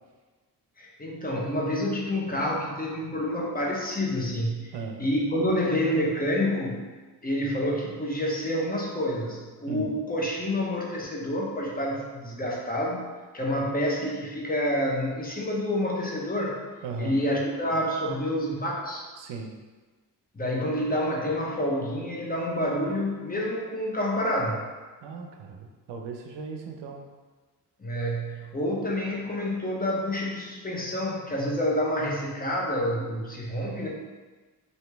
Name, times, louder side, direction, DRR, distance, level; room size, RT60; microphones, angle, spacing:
voice 1, 0.8-4.7 5.0-6.8 7.2-16.6 17.0-19.0 20.3-24.7 27.8-33.9, left 1 dB, 20° left, -3 dB, 0.9 m, -28 dB
voice 2, 4.7-5.0 9.7-9.9 16.8-17.2 19.2-19.5 25.0-27.1, right 4 dB, 70° right, 3 dB, 0.6 m, -37 dB
2.9 x 2.8 x 3.4 m, 1.3 s
supercardioid pair, 55°, 44 cm